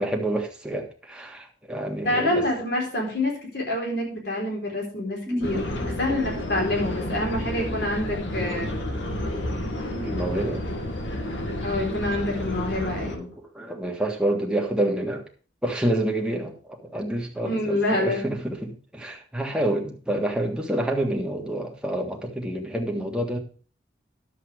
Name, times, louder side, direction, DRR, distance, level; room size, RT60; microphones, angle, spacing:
voice 1, 0.0-2.4 5.3-10.7 12.7-13.1 13.4-15.2 15.6-23.4, right 1 dB, 5° right, 1.5 m, -29 dB
voice 2, 2.0-8.7 11.6-13.3 17.5-18.2, left 1 dB, 60° left, 4.1 m, -27 dB
sound 1, 5.4-13.2, left 1 dB, 90° left, 1.8 m, -30 dB
11.0 x 7.6 x 4.9 m
head